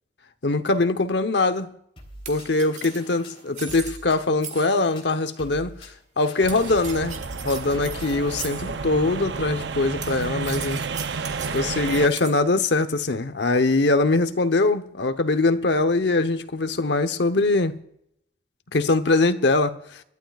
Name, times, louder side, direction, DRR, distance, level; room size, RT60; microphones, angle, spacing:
voice 1, 0.4-1.7 2.3-5.9 6.2-7.2 7.4-10.8 11.5-17.8 18.7-20.0, left 3 dB, 80° left, 0.9 m, -22 dB
sound 1, 2.0-8.8, equal, 30° left, 3.3 m, -44 dB
sound 2, 2.2-4.9 6.5-8.8 10.0-12.4, right 7 dB, 40° right, 1.5 m, -39 dB
sound 3, 6.4-12.1, right 4 dB, 85° right, 0.6 m, -31 dB
29.5 x 12.0 x 2.4 m
head